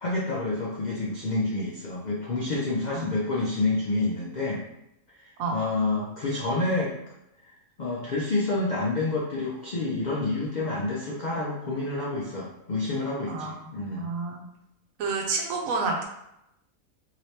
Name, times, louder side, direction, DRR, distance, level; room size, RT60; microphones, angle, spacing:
voice 1, 0.0-4.6 5.2-6.9 7.8-14.1, left 2 dB, 85° left, -3 dB, 0.4 m, -28 dB
voice 2, 13.3-13.6 14.0-14.4 15.0-16.0, right 4 dB, 75° right, 1 dB, 1.0 m, -29 dB
3.1 x 2.9 x 2.8 m, 0.84 s
omnidirectional pair, 1.5 m